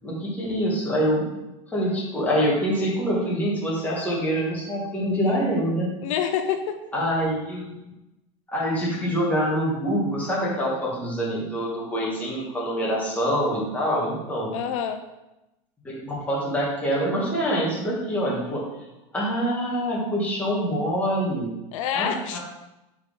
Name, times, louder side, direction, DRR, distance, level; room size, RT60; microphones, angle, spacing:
voice 1, 0.0-1.3 1.7-5.9 6.9-7.7 8.5-14.5 15.8-18.6 19.1-21.5 21.9-22.4, equal, 10° left, -6 dB, 2.0 m, -25 dB
voice 2, 6.0-6.8 14.5-15.0 21.7-22.4, left 8 dB, 80° left, 7 dB, 0.6 m, -27 dB
4.7 x 4.7 x 5.3 m, 0.96 s
supercardioid pair, 150°, 16 cm